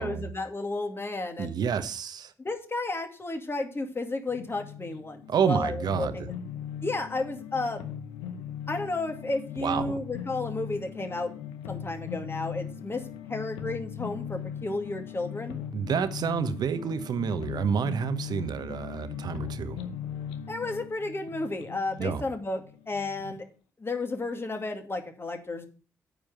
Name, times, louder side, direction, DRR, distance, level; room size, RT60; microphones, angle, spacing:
voice 1, 0.0-1.5 2.4-6.3 6.8-7.9 8.7-11.3 11.7-13.0 13.3-15.6 20.5-23.5 23.8-25.7, left 2 dB, 30° left, 2.3 m, -32 dB
voice 2, 1.4-2.3 5.3-6.3 9.6-10.0 15.7-19.8 22.0-22.2, right 7 dB, 60° right, 1.1 m, -29 dB
sound 1, 4.3-23.4, left 9 dB, 80° left, 0.8 m, -39 dB
9.2 x 5.1 x 7.6 m
hypercardioid pair, 40°, 8 cm